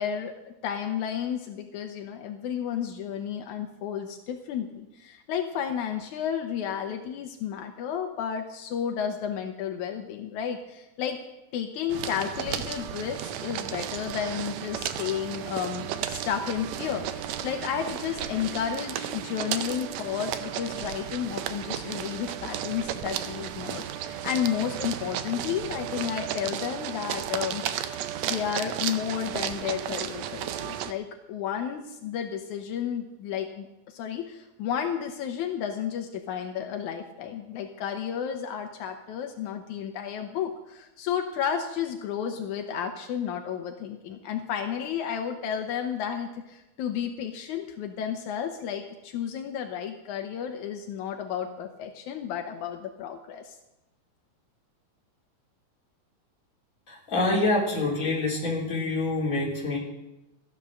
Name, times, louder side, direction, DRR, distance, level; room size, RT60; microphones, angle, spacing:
voice 1, 0.0-11.2 11.5-27.7 28.3-53.6, left 8 dB, 80° left, 4 dB, 2.3 m, -32 dB
sound 1, 11.9-30.9, right 10 dB, 75° right, 1.8 m, -34 dB
voice 2, 56.9-59.8, left 2 dB, 25° left, -4 dB, 3.6 m, -26 dB
14.5 x 10.5 x 6.3 m, 0.95 s
omnidirectional pair, 3.4 m